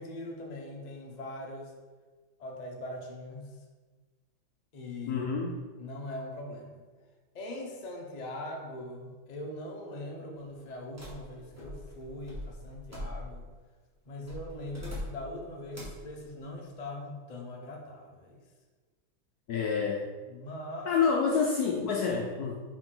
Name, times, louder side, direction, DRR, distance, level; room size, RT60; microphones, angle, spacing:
voice 1, 0.0-1.7 2.4-3.6 4.7-5.3 5.8-6.8 7.3-13.5 14.0-18.4 20.3-21.0, left 1 dB, 50° left, 0 dB, 0.5 m, -41 dB
voice 2, 5.1-5.5 19.5-20.1 20.9-22.6, left 5 dB, 70° left, 0 dB, 0.9 m, -28 dB
sound 1, 11.0-13.5 14.2-15.4 15.7-16.1, left 1 dB, 10° right, 1.3 m, -42 dB
5.2 x 4.9 x 3.8 m, 1.4 s
omnidirectional pair, 2.1 m